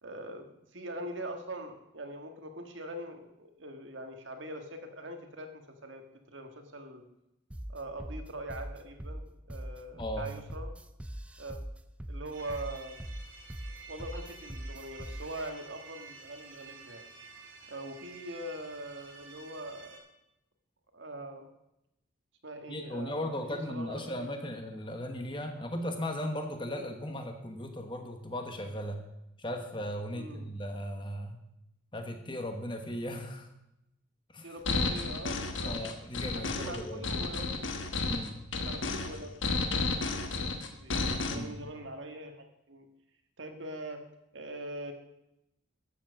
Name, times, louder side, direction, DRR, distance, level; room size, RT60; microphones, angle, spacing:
voice 1, 0.0-7.0 7.7-10.7 11.4-11.6 12.1-13.0 13.9-17.0 17.7-20.0 20.9-21.5 22.4-24.3 30.1-30.5 34.4-35.9 36.3-37.7 38.6-42.9 43.4-44.0 44.3-44.9, right 1 dB, 70° right, 5 dB, 1.5 m, -43 dB
sound 1, 7.5-15.5, right 1 dB, 5° right, 0.3 m, -41 dB
voice 2, 9.9-10.3 22.7-29.0 29.4-31.4 31.9-33.5 34.3-34.6 35.6-37.0 38.0-38.4 41.3-41.6, equal, 25° left, 5 dB, 1.2 m, -37 dB
sound 2, 12.3-20.0, right 4 dB, 85° right, 3.1 m, -51 dB
sound 3, 34.7-41.4, left 3 dB, 70° left, 1.3 m, -32 dB
13.5 x 7.4 x 6.3 m, 0.87 s
head